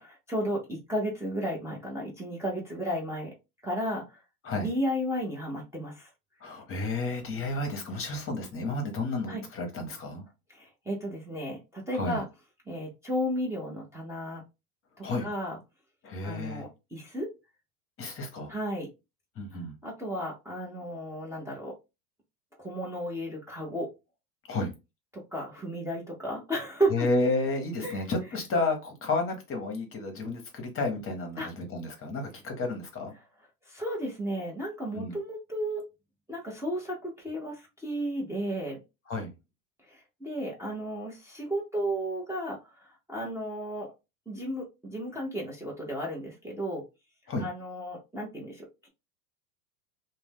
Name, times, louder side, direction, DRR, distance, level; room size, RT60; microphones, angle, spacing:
voice 1, 0.0-3.3 3.6-4.2 4.6-6.1 9.3-9.4 10.5-12.2 12.7-14.4 15.0-15.6 16.2-17.3 18.5-18.9 19.8-21.7 22.6-23.9 25.3-27.1 27.8-28.0 31.4-31.5 33.7-35.8 36.3-38.8 39.9-42.6 42.8-43.9 44.3-46.8 47.4-48.9, equal, 5° right, 0.7 m, -33 dB
voice 2, 6.4-10.2 11.9-12.2 15.0-15.3 16.0-16.7 18.0-18.5 19.4-19.7 24.5-24.7 26.9-33.1 34.9-35.2 39.1-39.3 47.3-47.5, left 2 dB, 30° left, 0.9 m, -31 dB
2.5 x 2.2 x 3.4 m
hypercardioid pair, 105°, 47 cm